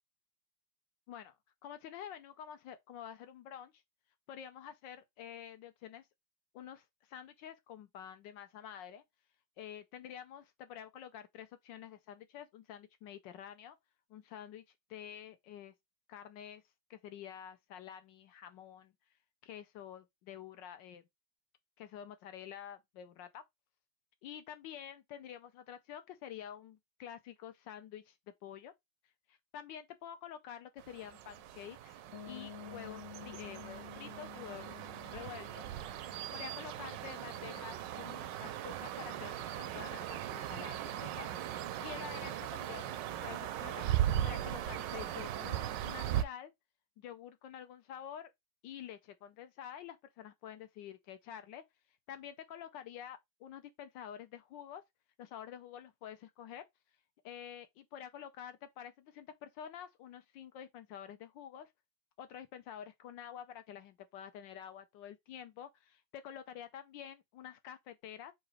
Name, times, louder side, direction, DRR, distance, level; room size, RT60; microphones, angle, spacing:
voice 1, 1.6-3.8 4.3-6.1 6.5-9.0 9.6-13.8 14.1-14.6 14.9-15.7 16.1-16.6 16.9-18.9 19.4-21.0 21.8-23.4 24.2-28.2 28.4-28.7 29.3-34.8 35.1-35.7 36.3-41.3 41.8-43.0 43.2-46.5 47.0-48.3 48.6-51.6 52.1-54.8 55.2-56.7 57.2-61.7 62.2-68.3, left 9 dB, 70° left, 1.2 m, -48 dB
Borlum-Bay, 30.8-46.2, right 11 dB, 75° right, 1.1 m, -38 dB
Piano, 32.1-37.8, left 8 dB, 55° left, 0.9 m, -52 dB
3.9 x 2.7 x 4.8 m
omnidirectional pair, 2.2 m